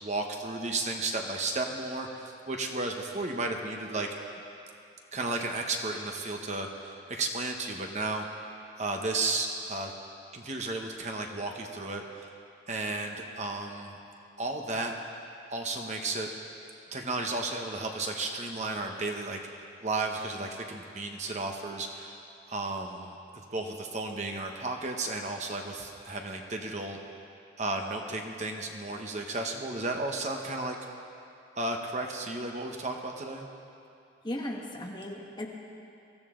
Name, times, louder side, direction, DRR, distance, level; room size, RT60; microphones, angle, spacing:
voice 1, 0.0-4.1 5.1-8.2 8.8-9.9 10.3-12.3 12.7-14.0 14.4-15.1 15.5-16.3 16.9-19.4 19.8-22.2 22.5-27.0 27.6-30.8 31.6-33.5, right 2 dB, 35° right, 2 dB, 1.0 m, -33 dB
voice 2, 34.2-35.5, left 1 dB, 20° left, -1 dB, 1.4 m, -36 dB
23.0 x 14.5 x 3.8 m, 2.6 s
head